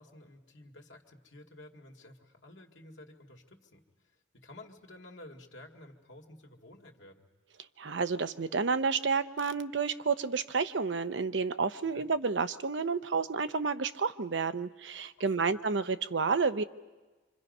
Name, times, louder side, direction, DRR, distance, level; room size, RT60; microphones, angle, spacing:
voice 1, 0.0-7.3 11.9-12.1 15.1-15.5, left 1 dB, 90° left, 2 dB, 2.1 m, -52 dB
voice 2, 7.8-16.6, right 5 dB, 80° right, 11 dB, 0.7 m, -30 dB
27.0 x 26.0 x 5.4 m, 1.3 s
head